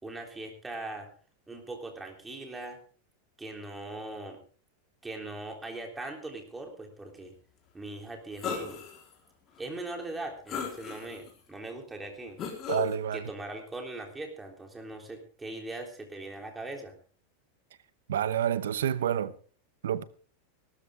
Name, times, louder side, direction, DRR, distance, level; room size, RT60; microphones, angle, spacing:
voice 1, 0.0-1.1 1.5-2.8 3.4-4.4 5.0-7.3 7.7-8.8 9.6-12.4 13.1-16.9, right 2 dB, 10° right, 3.6 m, -40 dB
sound 1, 8.4-9.0 9.6-9.7 10.5-11.3 12.4-12.9, left 7 dB, 35° left, 4.2 m, -35 dB
voice 2, 12.7-13.2 18.1-19.3 19.8-20.0, right 10 dB, 90° right, 0.9 m, -28 dB
17.0 x 13.0 x 3.7 m
supercardioid pair, 130°, 0 cm